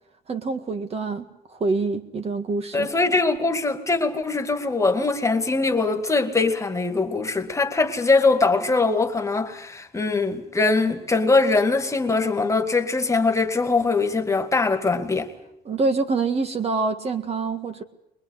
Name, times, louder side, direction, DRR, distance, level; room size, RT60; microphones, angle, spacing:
voice 1, 0.3-1.3 1.5-2.9 15.7-17.8, right 3 dB, 35° right, 1.8 m, -25 dB
voice 2, 2.7-15.3, left 3 dB, 15° left, 2.3 m, -22 dB
23.5 x 22.0 x 8.2 m
cardioid pair, 110°, 17 cm